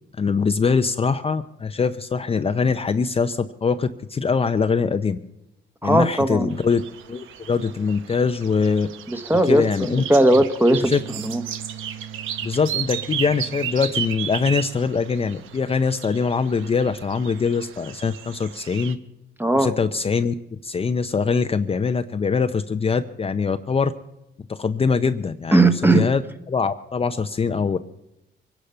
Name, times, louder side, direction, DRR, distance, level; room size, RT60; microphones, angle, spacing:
voice 1, 0.2-5.2 5.8-6.8 7.1-8.9 9.5-10.0 10.7-11.0 12.4-19.0 19.6-23.9 24.5-26.2 26.5-27.8, left 5 dB, 30° left, 8 dB, 0.6 m, -23 dB
voice 2, 5.8-6.5 9.1-10.9 11.2-11.4 19.4-19.7 25.5-26.1, right 1 dB, 10° right, 8 dB, 1.2 m, -18 dB
sound 1, 6.5-18.9, right 9 dB, 85° right, 0.9 m, -34 dB
sound 2, 10.9-17.5, right 9 dB, 60° right, 1.4 m, -43 dB
23.5 x 10.0 x 5.7 m, 0.87 s
cardioid pair, 90°, 20 cm